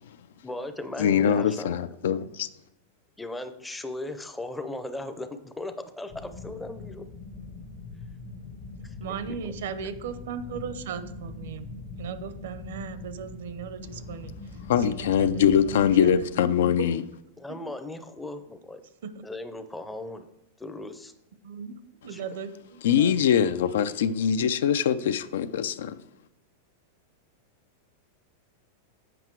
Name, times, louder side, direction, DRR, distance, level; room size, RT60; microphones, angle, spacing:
voice 1, 0.4-1.8 3.2-7.0 8.8-8.9 9.4-9.5 17.4-18.8 19.2-20.3 20.6-21.1 22.1-22.2, left 2 dB, 5° left, 0.5 m, -37 dB
voice 2, 1.0-2.5 14.7-17.0 22.8-26.0, left 8 dB, 75° left, 0.4 m, -23 dB
sound 1, 6.1-16.3, left 3 dB, 35° left, 0.8 m, -42 dB
voice 3, 9.0-14.3 14.8-16.3 16.6-16.9 17.5-17.6 19.0-19.3 21.4-23.2, right 7 dB, 70° right, 0.7 m, -37 dB
7.8 x 5.6 x 4.5 m
supercardioid pair, 160°, 0 cm